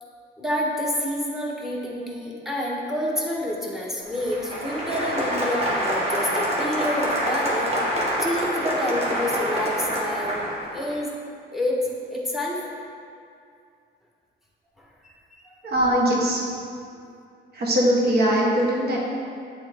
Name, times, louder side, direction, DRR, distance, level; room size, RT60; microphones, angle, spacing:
voice 1, 0.4-7.7 8.2-10.4 10.7-11.1 11.5-12.6 14.8-14.9 15.4-15.5, left 1 dB, ahead, -3 dB, 1.2 m, -28 dB
Applause, 4.0-11.0, equal, 30° right, 1.4 m, -26 dB
voice 2, 15.6-16.4 17.5-19.0, equal, 55° right, -3 dB, 1.3 m, -21 dB
8.0 x 3.5 x 3.5 m, 2.4 s
cardioid pair, 90°, 20 cm